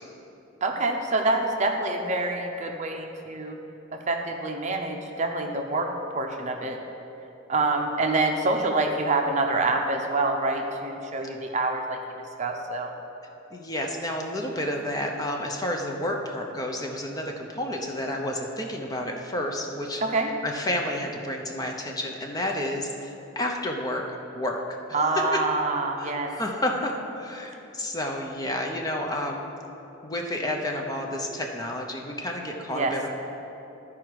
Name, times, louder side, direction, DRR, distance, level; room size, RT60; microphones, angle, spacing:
voice 1, 0.6-3.6 3.9-5.9 6.2-6.8 7.5-12.0 12.4-12.9 20.0-20.3 24.9-26.3 32.7-32.9, right 2 dB, 35° right, 3 dB, 0.6 m, -26 dB
voice 2, 13.5-20.0 20.4-24.8 26.0-29.5 30.0-33.1, left 1 dB, 20° left, 1 dB, 0.6 m, -30 dB
12.0 x 4.9 x 4.6 m, 2.9 s
head